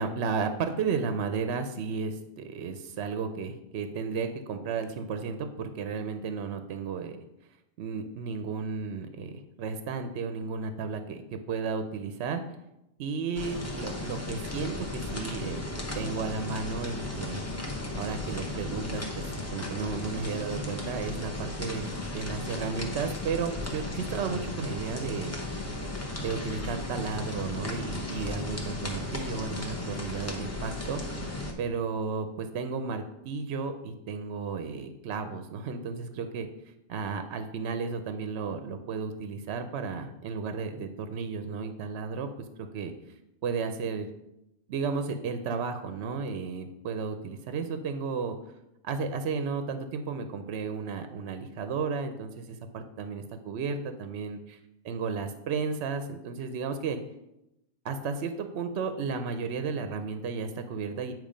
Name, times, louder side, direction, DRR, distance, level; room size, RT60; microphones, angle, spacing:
voice 1, 0.0-7.2 7.8-9.3 9.6-12.4 13.0-15.6 15.9-17.4 17.9-25.3 26.2-31.0 31.6-36.5 36.9-42.3 42.6-42.9 43.4-44.1 44.7-48.4 48.8-54.6 54.8-57.0 57.8-61.1, right 5 dB, 65° right, 8 dB, 0.8 m, -33 dB
sound 1, 13.3-31.5, left 2 dB, 15° left, 0.7 m, -35 dB
8.6 x 3.1 x 5.0 m, 0.88 s
omnidirectional pair, 1.4 m